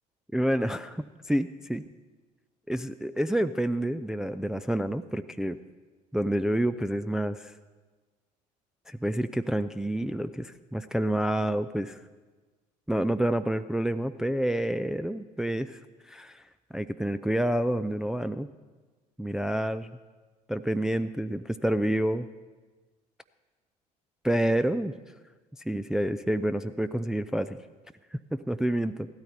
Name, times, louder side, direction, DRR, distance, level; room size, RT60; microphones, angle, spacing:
voice 1, 0.3-1.8 2.7-5.6 6.1-7.5 8.9-12.0 12.9-15.8 16.1-16.4 16.7-18.5 19.2-19.9 20.5-22.3 24.2-24.9 25.7-27.6 28.1-29.1, right 1 dB, 5° right, 9 dB, 0.4 m, -28 dB
16.0 x 12.5 x 4.1 m, 1.3 s
figure-of-eight pair, 55°, 20 cm